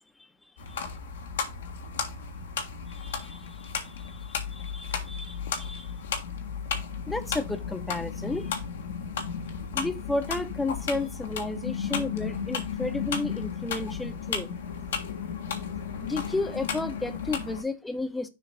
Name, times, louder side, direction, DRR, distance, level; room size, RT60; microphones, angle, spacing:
sound 1, 0.6-17.6, left 6 dB, 75° left, 1.4 m, -34 dB
voice 1, 2.9-5.9 7.1-8.5 9.7-14.5 16.0-18.3, left 2 dB, 10° left, 0.9 m, -33 dB
6.8 x 3.1 x 5.7 m
hypercardioid pair, 105°, 0 cm